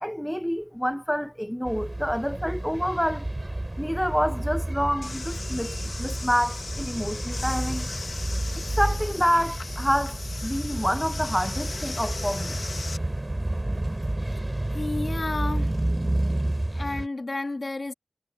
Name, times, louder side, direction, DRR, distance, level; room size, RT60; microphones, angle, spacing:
voice 1, 0.0-3.3 3.8-7.9 8.6-12.6, equal, 5° left, 0.5 m, -27 dB
sound 1, 1.6-17.1, right 1 dB, 30° right, 3.1 m, -30 dB
sound 2, 5.0-13.0, left 3 dB, 90° left, 1.2 m, -38 dB
voice 2, 14.7-15.8 16.7-17.9, left 2 dB, 60° left, 1.7 m, -32 dB
wide cardioid pair, 50°, 0 cm